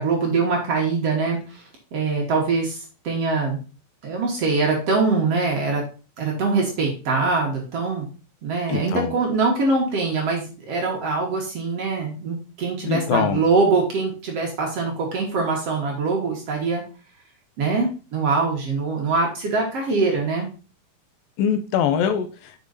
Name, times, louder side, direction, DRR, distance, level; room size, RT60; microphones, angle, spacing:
voice 1, 0.0-1.4 1.9-2.8 3.0-3.6 4.0-5.8 6.2-8.1 8.4-16.8 17.6-20.5, right 4 dB, 50° right, -1 dB, 2.3 m, -23 dB
voice 2, 8.7-9.1 12.8-13.4 21.4-22.6, left 8 dB, 80° left, 9 dB, 2.5 m, -23 dB
6.4 x 6.1 x 4.0 m, 0.35 s
omnidirectional pair, 4.2 m